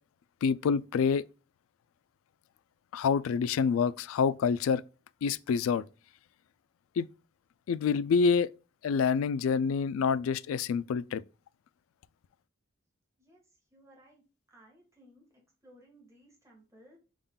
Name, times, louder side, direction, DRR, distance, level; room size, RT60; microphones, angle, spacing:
voice 1, 0.4-1.2 2.9-4.8 5.2-5.8 7.0-7.1 7.7-8.5 8.8-11.2, left 6 dB, 85° left, 0.3 m, -27 dB
voice 2, 13.7-14.2 14.5-15.3 15.6-17.0, equal, 15° right, 1.6 m, -59 dB
5.5 x 3.6 x 2.3 m
head